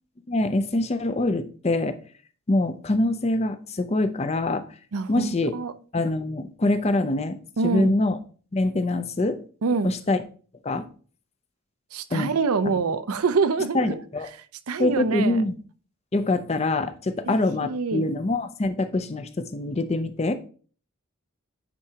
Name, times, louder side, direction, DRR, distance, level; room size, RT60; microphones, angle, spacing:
voice 1, 0.3-2.0 2.5-4.6 5.1-5.6 5.9-8.2 8.5-9.4 9.8-10.2 10.6-10.8 12.1-12.3 13.7-14.3 14.8-15.5 16.1-20.3, left 2 dB, 30° left, 0.5 m, -24 dB
voice 2, 4.9-5.2 5.5-5.7 7.6-8.0 9.6-9.9 11.9-14.0 14.7-15.4 17.2-18.1, right 4 dB, 80° right, 0.6 m, -25 dB
9.6 x 4.7 x 2.8 m
head